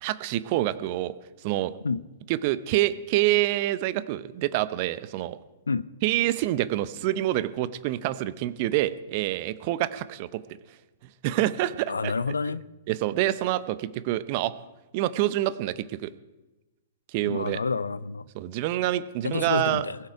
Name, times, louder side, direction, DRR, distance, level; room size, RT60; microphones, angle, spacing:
voice 1, 0.0-1.1 1.4-1.7 2.3-5.4 6.0-10.4 11.2-12.1 12.9-14.5 14.9-16.1 17.1-17.6 18.3-19.9, right 15 dB, 45° right, 0.8 m, -26 dB
voice 2, 11.9-12.6 17.2-18.2 19.2-20.0, left 4 dB, 80° left, 0.5 m, -28 dB
21.5 x 7.7 x 4.8 m
figure-of-eight pair, 110°, 0 cm